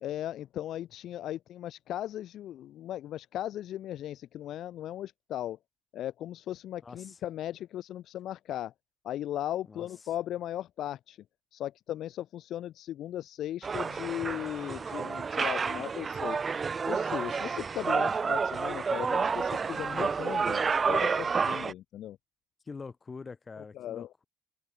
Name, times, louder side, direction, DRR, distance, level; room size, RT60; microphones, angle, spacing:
voice 1, 0.0-5.6 5.9-8.7 9.0-11.2 11.5-16.4 16.9-22.2 23.7-24.1, left 12 dB, 60° left, 0.3 m, -37 dB
voice 2, 6.8-7.2 9.7-9.9 22.7-24.2, left 4 dB, 25° left, 5.6 m, -44 dB
sound 1, 13.6-21.7, right 5 dB, 30° right, 0.5 m, -30 dB
open air
cardioid pair, 110°, 0 cm